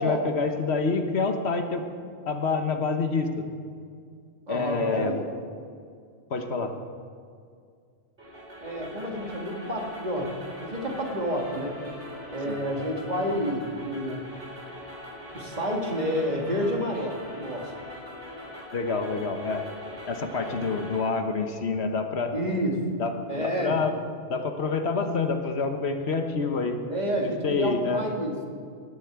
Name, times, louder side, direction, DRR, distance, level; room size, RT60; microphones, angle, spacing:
voice 1, 0.0-1.9 2.3-3.4 4.5-5.2 6.3-6.7 12.5-12.6 18.7-19.7 20.1-22.3 23.0-23.9 24.3-26.8 27.2-28.0, left 4 dB, 70° left, 6 dB, 1.4 m, -27 dB
voice 2, 4.5-5.2 8.6-11.8 12.3-14.3 15.3-17.8 22.3-22.9 23.3-23.8 26.9-28.3, equal, 40° right, 1 dB, 2.1 m, -29 dB
sound 1, 8.2-21.0, equal, 85° right, 4.3 m, -41 dB
19.0 x 8.2 x 8.1 m, 2.2 s
omnidirectional pair, 1.1 m